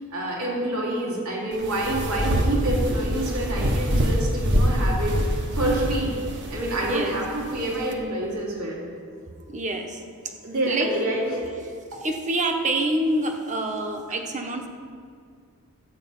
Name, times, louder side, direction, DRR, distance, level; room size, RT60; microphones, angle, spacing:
voice 1, 0.1-5.2 5.5-6.2 6.5-8.8 10.4-11.4, right 1 dB, 85° right, -4 dB, 2.7 m, -27 dB
sound 1, 1.5-7.9, equal, 55° right, 1.2 m, -25 dB
voice 2, 9.5-10.0 10.7-10.9 12.0-14.7, right 2 dB, 35° right, 4 dB, 1.1 m, -26 dB
13.0 x 8.2 x 5.5 m, 2.2 s
head